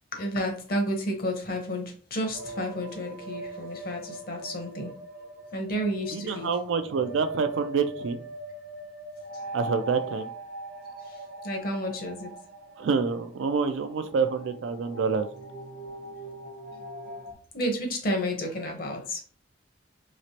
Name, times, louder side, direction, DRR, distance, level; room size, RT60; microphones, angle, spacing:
voice 1, 0.1-4.9 5.5-6.6 11.0-11.2 11.4-12.3 16.7-16.8 17.5-19.2, equal, 50° left, 2 dB, 0.9 m, -31 dB
sound 1, 2.3-17.3, right 1 dB, 50° right, 0.7 m, -41 dB
voice 2, 6.1-8.2 9.5-10.3 12.8-15.3, right 5 dB, 80° right, 9 dB, 0.4 m, -27 dB
3.1 x 2.9 x 2.8 m, 0.44 s
head